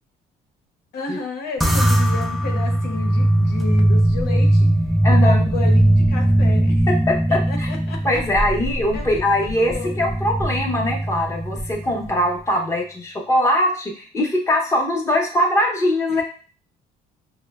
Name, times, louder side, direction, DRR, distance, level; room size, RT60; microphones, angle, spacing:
voice 1, 0.9-4.7 5.1-6.9 7.3-8.2 8.9-9.2 9.7-10.0 16.1-16.2, left 3 dB, 75° left, 1 dB, 0.8 m, -31 dB
sound 1, 1.6-12.2, right 1 dB, ahead, 0.3 m, -19 dB
voice 2, 5.0-5.5 6.9-7.7 8.0-16.2, left 1 dB, 15° left, 0 dB, 0.7 m, -21 dB
4.8 x 2.1 x 2.3 m, 0.41 s
cardioid pair, 110°, 17 cm